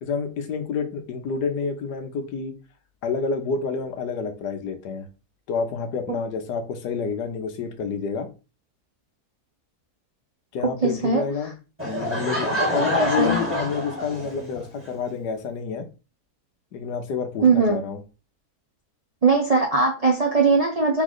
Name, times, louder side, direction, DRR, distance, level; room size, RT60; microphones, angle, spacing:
voice 1, 0.0-2.5 3.0-5.1 5.5-8.3 10.5-11.5 11.8-15.9 16.7-18.0, left 5 dB, 90° left, 6 dB, 1.4 m, -28 dB
voice 2, 10.6-11.2 12.8-13.4 17.4-17.8 19.2-21.0, right 4 dB, 50° right, 0 dB, 0.4 m, -20 dB
Laughter / Crowd, 11.8-14.6, equal, 10° right, 1.3 m, -27 dB
4.0 x 3.1 x 3.9 m, 0.31 s
omnidirectional pair, 1.7 m